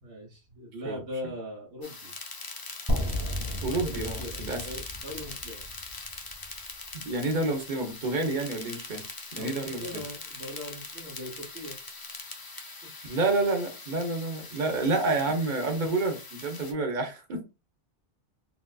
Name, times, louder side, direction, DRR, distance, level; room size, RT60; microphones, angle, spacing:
voice 1, 0.0-2.1 3.8-5.6 9.4-11.8 14.7-14.9 15.3-15.4, left 1 dB, 90° right, 1.2 m, -40 dB
sound 1, 1.8-16.7, left 3 dB, 30° left, 0.4 m, -42 dB
sound 2, 2.9-6.9, equal, 20° right, 0.8 m, -33 dB
voice 2, 3.6-4.6 6.9-9.0 9.4-10.0 13.1-17.4, right 2 dB, 50° right, 0.9 m, -29 dB
4.0 x 2.3 x 2.3 m
omnidirectional pair, 1.1 m